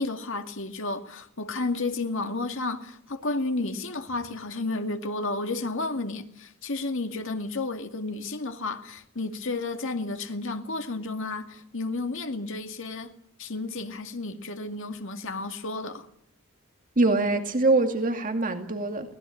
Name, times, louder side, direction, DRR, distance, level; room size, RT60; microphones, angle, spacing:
voice 1, 0.0-13.1 13.4-16.1, left 2 dB, 65° left, 2.2 m, -32 dB
voice 2, 17.0-19.1, right 2 dB, 40° right, 2.3 m, -24 dB
23.5 x 19.0 x 8.5 m
head